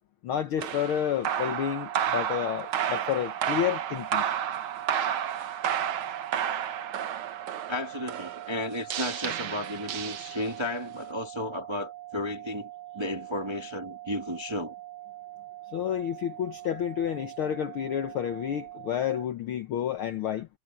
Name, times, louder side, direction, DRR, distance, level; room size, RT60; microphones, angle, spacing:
voice 1, 0.2-4.2 15.7-20.5, left 9 dB, 75° left, 1.2 m, -30 dB
sound 1, 0.6-10.8, right 9 dB, 65° right, 1.4 m, -31 dB
sound 2, 1.5-19.3, right 15 dB, 30° left, 5.6 m, -44 dB
voice 2, 7.7-12.7 12.9-14.7, left 1 dB, 15° right, 0.9 m, -33 dB
omnidirectional pair, 3.6 m